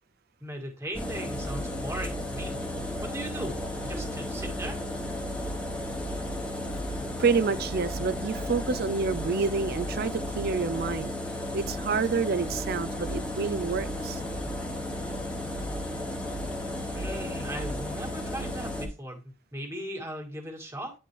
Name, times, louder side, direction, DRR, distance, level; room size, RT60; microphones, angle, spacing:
voice 1, 0.4-2.6 3.0-3.6 3.8-4.8 16.9-20.9, right 1 dB, 15° right, 1.8 m, -38 dB
sound 1, 0.9-18.9, left 1 dB, 5° left, 1.1 m, -34 dB
voice 2, 7.2-11.1 11.5-14.2, right 4 dB, 50° right, 0.5 m, -28 dB
9.9 x 4.2 x 3.1 m
head